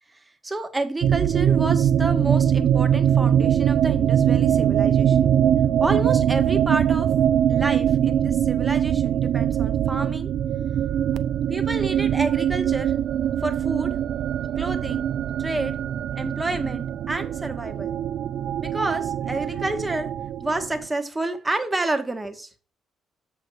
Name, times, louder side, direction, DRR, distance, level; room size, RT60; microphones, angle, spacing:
voice 1, 0.1-5.3 5.8-7.1 7.5-10.3 11.5-12.9 13.4-14.0 14.6-15.1 15.4-15.8 16.2-17.9 18.6-20.1 20.4-22.5, right 2 dB, 15° right, 1.5 m, -29 dB
sound 1, 1.0-20.9, right 9 dB, 75° right, 0.5 m, -22 dB
7.9 x 6.2 x 4.7 m
cardioid pair, 90°, 0 cm